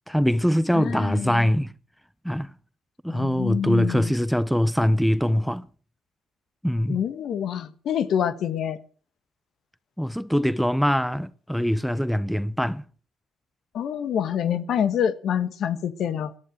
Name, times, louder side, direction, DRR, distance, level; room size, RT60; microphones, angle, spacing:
voice 1, 0.1-1.7 2.2-2.5 3.0-5.7 6.6-7.0 10.0-12.8, equal, ahead, 0.8 m, -23 dB
voice 2, 0.7-1.5 3.1-4.1 6.9-8.8 13.7-16.3, left 9 dB, 65° left, 1.5 m, -26 dB
17.5 x 11.0 x 6.5 m
hypercardioid pair, 55°, 0 cm